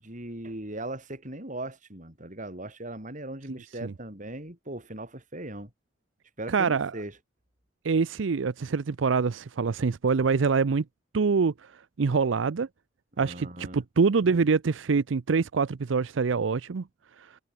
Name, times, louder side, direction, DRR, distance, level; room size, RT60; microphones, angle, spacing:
voice 1, 0.0-5.7 6.4-7.2 13.2-13.8, right 1 dB, 45° right, 6.1 m, -39 dB
voice 2, 6.5-6.9 7.8-10.8 11.1-12.7 13.2-16.8 17.2-17.3, right 5 dB, 90° right, 0.5 m, -25 dB
head